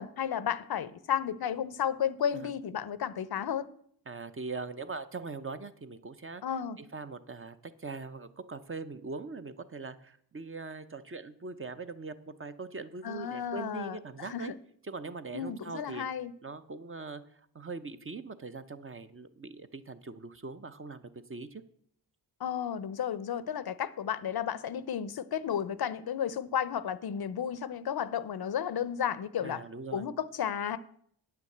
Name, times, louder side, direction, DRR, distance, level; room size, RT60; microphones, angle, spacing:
voice 1, 0.0-3.7 6.4-6.8 13.0-14.6 15.3-16.3 22.4-29.6 29.9-30.8, left 8 dB, 60° left, 0.6 m, -33 dB
voice 2, 4.1-6.4 6.8-12.1 12.4-14.5 14.9-16.1 16.4-17.2 17.5-21.0 21.3-21.6 29.4-30.1, right 4 dB, 30° right, 0.7 m, -41 dB
9.6 x 5.9 x 7.8 m
wide cardioid pair, 95°, 43 cm